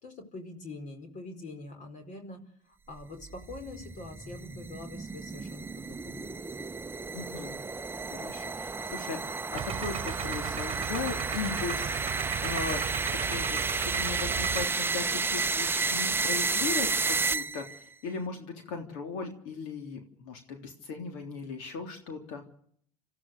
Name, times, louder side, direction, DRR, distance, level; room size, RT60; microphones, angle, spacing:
voice 1, 0.0-2.4 2.9-6.3, left 2 dB, 45° left, 7 dB, 4.8 m, -44 dB
sound 1, 3.0-17.8, right 4 dB, 15° right, 0.8 m, -32 dB
voice 2, 7.1-7.6 8.1-11.9 12.4-12.8 13.3-17.7 18.0-22.4, left 5 dB, 70° left, 4 dB, 3.6 m, -37 dB
Idling, 9.5-14.6, right 10 dB, 35° right, 1.4 m, -36 dB
27.5 x 15.0 x 6.8 m, 0.63 s
hypercardioid pair, 95°, 17 cm